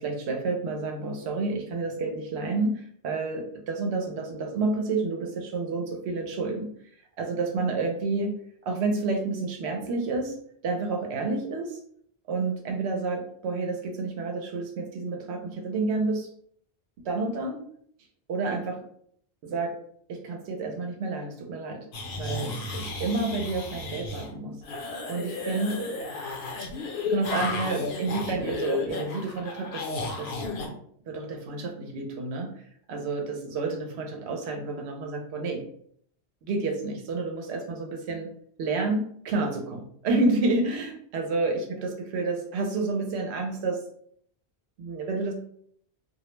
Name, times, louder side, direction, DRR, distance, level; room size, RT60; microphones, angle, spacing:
voice 1, 0.0-6.7 7.2-8.3 8.6-10.3 10.6-11.8 12.3-16.3 17.0-17.6 18.3-18.8 19.4-19.8 20.1-21.9 22.2-24.6 25.1-25.8 27.0-29.9 30.2-30.4 31.1-32.5 32.9-35.6 36.4-38.3 38.6-43.8 44.8-45.3, right 3 dB, 75° right, 3 dB, 0.9 m, -29 dB
sound 1, 21.9-24.3 24.6-30.7, left 3 dB, 70° left, 0.8 m, -33 dB
2.3 x 2.0 x 3.0 m, 0.64 s
omnidirectional pair, 1.1 m